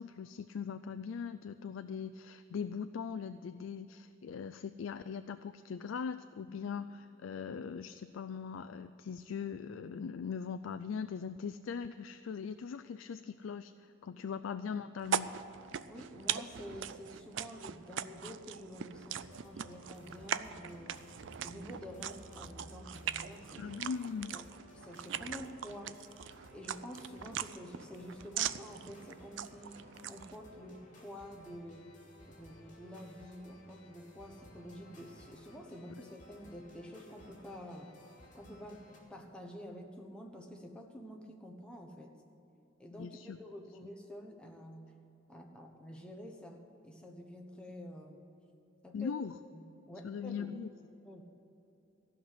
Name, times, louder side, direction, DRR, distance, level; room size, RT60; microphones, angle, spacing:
voice 1, 0.0-15.3 23.6-24.4 43.0-43.4 48.9-49.4 50.0-50.7, left 6 dB, 70° left, 11 dB, 0.4 m, -40 dB
sound 1, 15.0-30.4, right 9 dB, 65° right, 0.4 m, -41 dB
voice 2, 15.9-21.0 21.4-23.7 24.3-26.0 26.5-31.9 32.3-37.9 38.3-42.1 42.8-44.9 45.3-48.3 48.8-49.1 49.5-50.5 51.0-51.2, equal, 5° left, 1 dB, 1.1 m, -49 dB
sound 2, 19.2-39.0, left 1 dB, 40° left, 2.8 m, -57 dB
15.5 x 5.8 x 9.7 m, 3.0 s
head